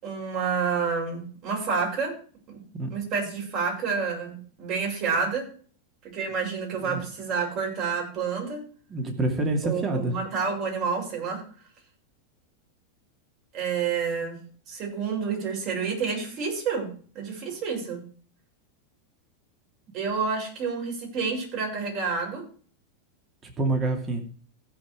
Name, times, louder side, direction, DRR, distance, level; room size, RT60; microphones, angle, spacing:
voice 1, 0.0-2.1 2.5-2.6 2.9-5.5 6.1-8.6 9.6-11.4 13.5-14.4 14.7-16.9 17.1-18.0 19.9-22.4, right 5 dB, 45° right, 7.2 m, -29 dB
voice 2, 8.9-10.2 23.4-24.3, right 2 dB, 25° right, 2.5 m, -27 dB
16.0 x 5.7 x 4.9 m
supercardioid pair, 130°, 0 cm